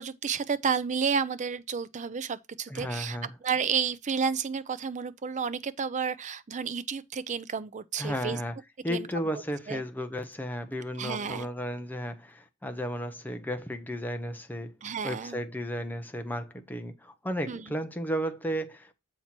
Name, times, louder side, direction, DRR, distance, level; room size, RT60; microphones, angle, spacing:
voice 1, 0.0-3.2 3.4-8.4 8.9-9.1 9.7-9.8 11.0-11.5 14.8-15.4 17.5-17.7, right 6 dB, 35° right, 0.4 m, -31 dB
voice 2, 2.7-3.3 8.0-8.6 8.8-14.8 15.0-18.9, equal, 10° left, 0.7 m, -34 dB
7.3 x 4.4 x 4.3 m
head